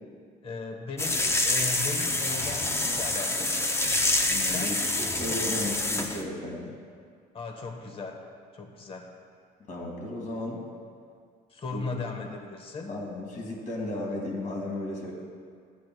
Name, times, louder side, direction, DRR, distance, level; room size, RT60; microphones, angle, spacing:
voice 1, 0.4-3.6 4.4-4.8 7.3-9.2 11.5-13.0, left 3 dB, 35° left, 3 dB, 1.1 m, -37 dB
sound 1, 1.0-6.2, left 2 dB, 15° left, 0.6 m, -27 dB
voice 2, 4.3-6.8 9.7-10.6 11.7-11.8 12.9-15.1, left 1 dB, 50° left, -1 dB, 2.0 m, -34 dB
13.5 x 8.4 x 2.3 m, 2.2 s
cardioid pair, 110°, 17 cm